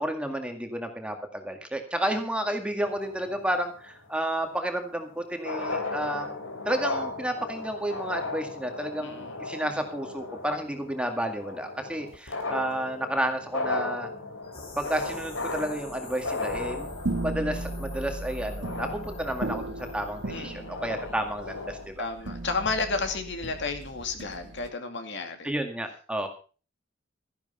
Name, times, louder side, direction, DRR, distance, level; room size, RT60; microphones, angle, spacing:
voice 1, 0.0-6.4 6.7-14.1 14.8-16.9 17.2-22.1 25.4-26.3, right 1 dB, 5° right, 5 dB, 2.0 m, -31 dB
sound 1, 2.8-3.9 5.1-5.2 5.3-21.9, left 2 dB, 85° left, 3.6 m, -36 dB
voice 2, 9.0-9.4 20.3-20.8 22.0-25.5, left 3 dB, 60° left, 6 dB, 2.4 m, -32 dB
sound 2, 14.4-20.5, left 2 dB, 30° left, 4.0 m, -47 dB
sound 3, 16.5-24.7, right 2 dB, 60° right, 1.6 m, -36 dB
14.0 x 11.0 x 5.5 m, 0.37 s
head